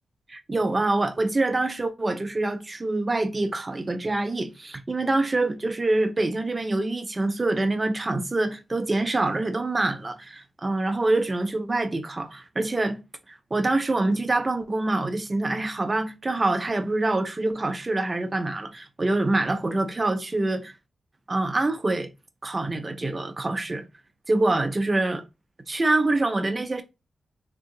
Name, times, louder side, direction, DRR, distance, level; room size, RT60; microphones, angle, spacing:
voice 1, 0.3-13.0 13.3-20.7 21.3-22.1 22.4-23.8 24.3-25.2 25.7-26.8, right 2 dB, 25° right, 0.4 m, -25 dB
2.7 x 2.6 x 3.7 m
wide cardioid pair, 135°, 0 cm